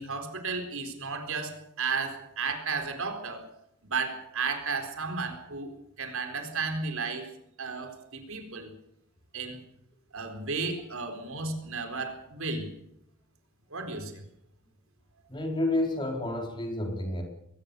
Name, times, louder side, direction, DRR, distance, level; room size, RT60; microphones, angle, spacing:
voice 1, 0.0-3.5 3.9-7.3 7.6-8.7 9.3-9.6 10.1-12.7 13.7-14.2, right 4 dB, 70° right, 6 dB, 4.2 m, -33 dB
voice 2, 15.3-17.2, left 1 dB, 20° left, 3 dB, 3.9 m, -30 dB
22.0 x 19.0 x 6.9 m, 0.74 s
head